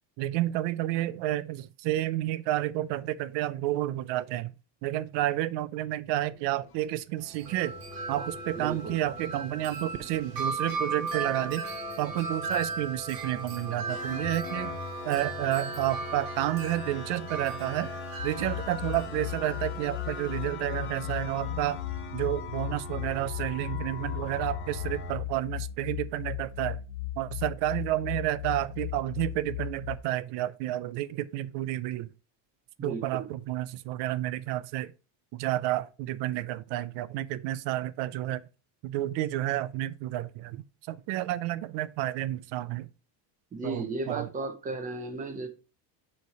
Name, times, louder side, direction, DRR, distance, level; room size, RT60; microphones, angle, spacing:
voice 1, 0.2-4.5 4.8-7.7 8.1-11.6 12.0-14.8 15.0-17.9 18.2-21.8 22.1-26.8 27.2-32.1 32.8-34.9 35.3-38.4 38.8-42.9 43.6-44.3, right 14 dB, 60° right, 0.5 m, -30 dB
sound 1, 6.1-6.9 7.4-25.2, left 5 dB, 25° left, 0.5 m, -43 dB
Wind chime, 7.2-20.5, right 3 dB, 45° right, 1.5 m, -37 dB
voice 2, 8.6-9.0 32.8-33.3 43.5-45.5, right 3 dB, 15° right, 0.6 m, -34 dB
sound 2, 18.2-30.0, left 13 dB, 75° left, 1.3 m, -37 dB
6.7 x 3.3 x 4.6 m
cardioid pair, 175°, 48 cm